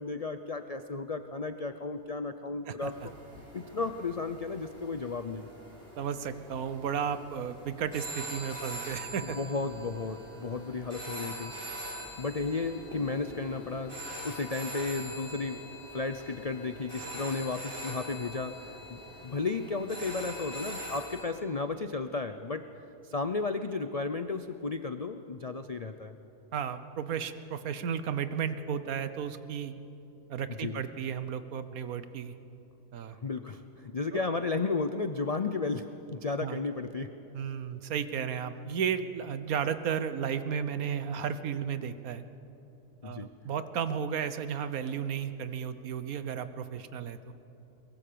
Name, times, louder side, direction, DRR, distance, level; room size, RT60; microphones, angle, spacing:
voice 1, 0.0-2.9 3.5-5.5 9.3-11.5 12.2-13.9 14.2-15.6 15.9-22.7 23.1-26.2 30.6-30.8 33.2-37.1 43.0-43.3, left 3 dB, 60° left, 9 dB, 0.3 m, -33 dB
sound 1, 2.8-21.2, equal, 35° right, 5.4 m, -43 dB
voice 2, 6.0-9.4 26.5-29.7 30.3-32.3 32.9-33.2 34.1-34.2 36.4-36.6 37.3-42.2 43.0-47.2, right 7 dB, 65° right, 12 dB, 1.4 m, -33 dB
23.0 x 21.5 x 6.9 m, 3.0 s
omnidirectional pair, 1.7 m